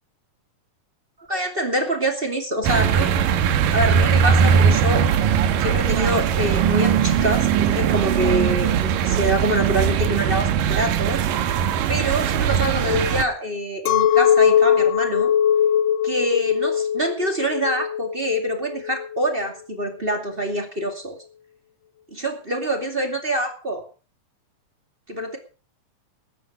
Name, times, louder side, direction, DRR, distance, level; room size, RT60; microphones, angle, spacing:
voice 1, 1.3-3.2 3.7-5.1 5.6-11.3 11.9-15.3 16.0-21.2 22.1-23.8 25.1-25.4, equal, 20° right, 4 dB, 2.1 m, -25 dB
sound 1, 2.6-13.2, right 8 dB, 85° right, 2.8 m, -20 dB
Chink clink, 13.9-19.3, left 9 dB, 80° left, 2.5 m, -20 dB
20.0 x 9.7 x 4.9 m, 0.37 s
omnidirectional pair, 3.8 m